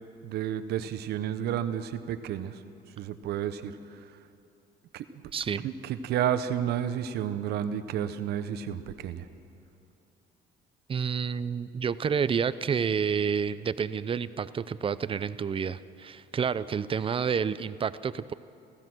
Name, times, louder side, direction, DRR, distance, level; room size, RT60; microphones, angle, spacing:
voice 1, 0.2-2.6 3.0-4.0 4.9-5.2 5.6-9.3, right 10 dB, 75° right, 11 dB, 1.1 m, -31 dB
voice 2, 5.3-5.6 10.9-18.3, right 6 dB, 30° right, 15 dB, 0.6 m, -29 dB
28.5 x 15.5 x 6.3 m, 2.7 s
cardioid pair, 110°, 17 cm